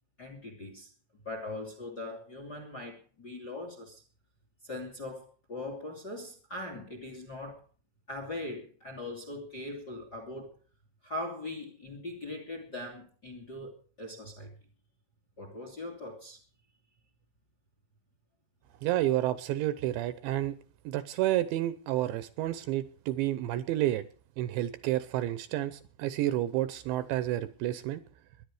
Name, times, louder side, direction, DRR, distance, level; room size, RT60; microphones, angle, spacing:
voice 1, 0.2-0.9 1.2-4.0 4.6-7.6 8.1-10.6 11.0-14.5 15.4-16.4, left 2 dB, 30° left, 2.1 m, -40 dB
voice 2, 18.8-20.6 20.9-24.0 24.4-28.0, right 14 dB, 75° right, 2.9 m, -30 dB
21.5 x 11.0 x 4.9 m
omnidirectional pair, 5.6 m